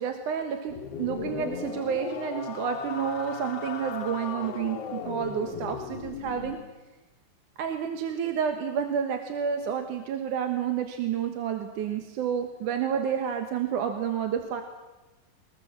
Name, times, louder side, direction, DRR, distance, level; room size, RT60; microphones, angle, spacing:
voice 1, 0.0-6.6 7.6-14.6, right 8 dB, 65° right, 6 dB, 2.7 m, -30 dB
sound 1, 0.7-6.6, left 7 dB, 55° left, 2.1 m, -36 dB
24.0 x 21.0 x 7.4 m, 1.1 s
omnidirectional pair, 4.1 m